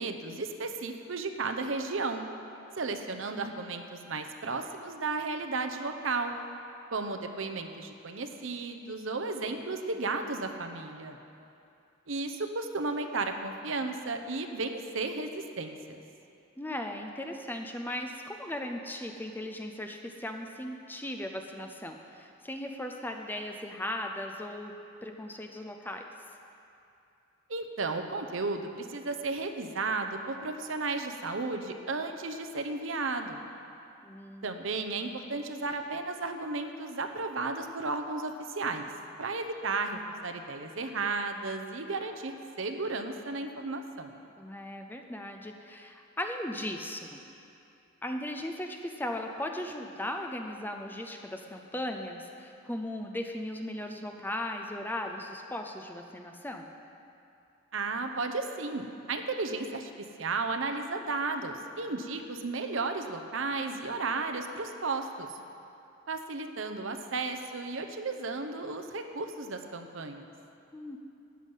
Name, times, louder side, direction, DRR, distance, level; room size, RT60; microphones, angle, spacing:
voice 1, 0.0-2.3 2.8-6.3 6.9-11.2 12.1-16.0 27.5-33.4 34.4-38.9 39.2-44.1 57.7-59.9 60.2-65.3 66.1-70.3, right 3 dB, 70° right, 6 dB, 0.8 m, -34 dB
voice 2, 16.6-24.7 25.0-26.0 34.0-34.5 44.4-47.2 48.0-56.7 70.7-71.0, left 1 dB, 10° left, 4 dB, 0.5 m, -37 dB
13.5 x 9.1 x 5.5 m, 2.7 s
head